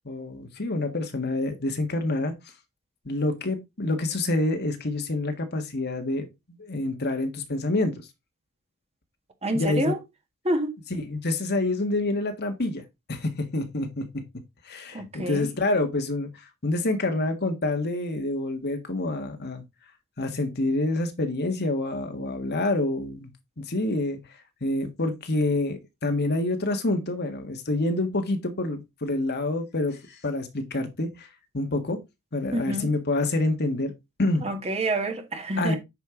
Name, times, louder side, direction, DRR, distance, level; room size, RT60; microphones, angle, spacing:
voice 1, 0.0-2.3 3.0-7.9 9.5-9.9 10.9-12.8 13.1-14.1 14.6-19.6 20.2-23.3 23.6-24.2 24.6-31.3 31.5-32.0 32.3-33.9 34.2-34.4 35.6-35.8, left 2 dB, 45° left, 1.6 m, -27 dB
voice 2, 9.4-10.0 10.4-10.7 14.9-15.5 32.5-32.9 34.4-35.8, right 1 dB, 30° right, 1.6 m, -27 dB
9.1 x 5.4 x 3.8 m
head